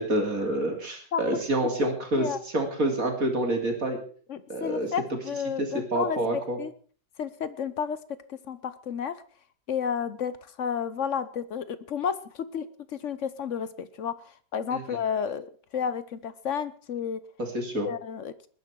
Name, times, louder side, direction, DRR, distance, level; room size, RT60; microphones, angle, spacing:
voice 1, 0.0-4.0 4.5-4.9 5.6-6.6 14.7-14.8 17.4-17.9, right 1 dB, 50° right, 3 dB, 3.2 m, -27 dB
voice 2, 1.8-2.4 4.3-6.2 6.6-6.7 7.2-8.0 8.3-9.2 9.7-14.1 14.5-17.2 17.8-18.3, left 7 dB, 55° left, 14 dB, 0.9 m, -31 dB
20.0 x 10.5 x 4.6 m, 0.44 s
omnidirectional pair, 2.0 m